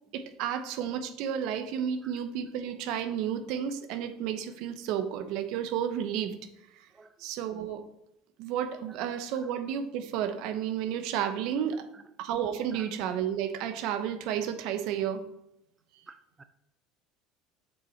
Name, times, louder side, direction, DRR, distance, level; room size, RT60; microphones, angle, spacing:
voice 1, 0.1-6.3 6.8-6.9 7.2-7.8 8.4-11.8 12.2-15.2, right 9 dB, 65° right, 9 dB, 0.9 m, -32 dB
voice 2, 16.1-16.4, right 4 dB, 20° right, 10 dB, 0.6 m, -52 dB
6.8 x 5.5 x 4.4 m, 0.82 s
hypercardioid pair, 85°, 0 cm